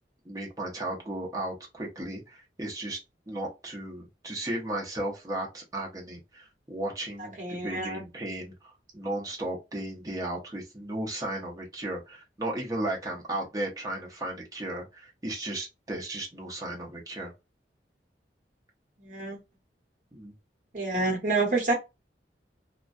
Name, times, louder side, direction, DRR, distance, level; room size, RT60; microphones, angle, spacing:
voice 1, 0.2-3.0 3.3-17.3 20.1-20.3, right 1 dB, 20° right, 0.7 m, -35 dB
voice 2, 7.4-8.0 19.0-19.4 20.7-21.7, right 3 dB, 45° right, 1.0 m, -28 dB
2.3 x 2.2 x 2.5 m
head